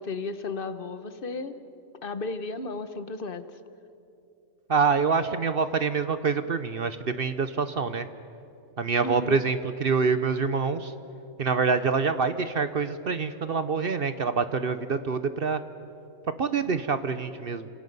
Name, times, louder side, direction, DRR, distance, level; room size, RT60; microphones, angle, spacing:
voice 1, 0.0-1.5 2.0-3.5 9.0-9.4, left 3 dB, 40° left, 11 dB, 1.1 m, -34 dB
voice 2, 4.7-8.1 8.8-10.9 11.4-15.6 16.4-17.7, right 5 dB, 50° right, 11 dB, 0.8 m, -26 dB
29.5 x 26.5 x 5.4 m, 2.7 s
omnidirectional pair, 1.5 m